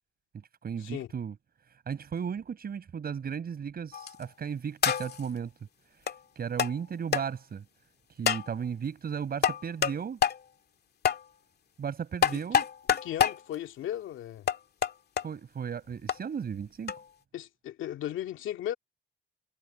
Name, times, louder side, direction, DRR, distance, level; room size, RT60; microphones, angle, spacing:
voice 1, 0.6-1.4 1.9-5.5 6.4-7.6 8.1-10.2 11.8-12.7 15.2-16.9, right 7 dB, 50° right, 6.0 m, -35 dB
sound 1, 3.9-4.2 4.8-5.3 6.1-6.2 6.6-6.7 7.1-7.2 8.3-8.5 9.4-10.0 10.2-10.4 11.0-11.2 12.2-13.4 14.5-15.2 16.1-16.2 16.9-17.0, left 8 dB, 55° left, 2.2 m, -26 dB
voice 2, 13.0-14.5 17.3-18.7, left 12 dB, 80° left, 2.3 m, -36 dB
cardioid pair, 90°, 20 cm